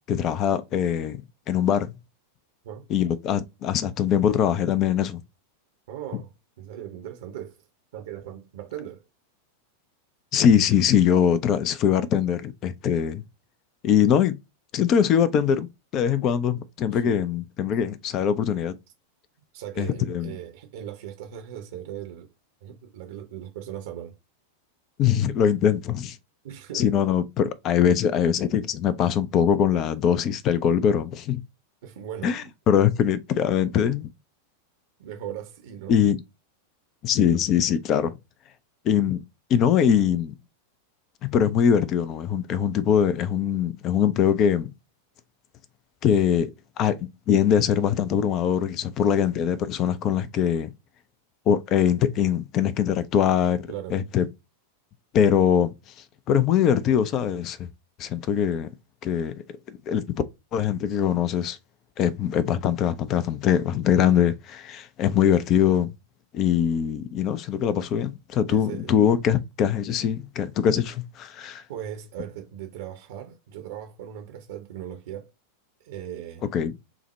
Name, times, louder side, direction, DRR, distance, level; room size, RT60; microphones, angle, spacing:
voice 1, 0.1-1.2 1.5-1.9 2.9-5.2 10.3-13.2 13.8-14.4 14.7-18.7 19.8-20.4 25.0-26.2 26.7-31.4 32.2-34.1 35.9-36.2 37.0-38.2 38.8-39.2 39.5-40.3 41.2-44.7 46.0-46.5 46.8-50.7 51.5-54.3 55.1-55.7 56.3-57.7 58.0-58.7 59.0-59.3 59.9-60.0 60.5-61.6 62.0-65.9 66.3-71.6 76.5-76.7, left 8 dB, 35° left, 0.4 m, -22 dB
voice 2, 5.9-6.3 6.6-7.6 7.9-9.0 16.9-17.3 19.5-22.3 22.6-24.2 26.4-26.9 31.8-32.5 35.0-36.0 53.7-54.0 68.5-69.0 71.7-75.3 75.8-76.5, right 10 dB, 55° right, 0.7 m, -38 dB
5.8 x 2.1 x 3.0 m
figure-of-eight pair, 90°, 0 cm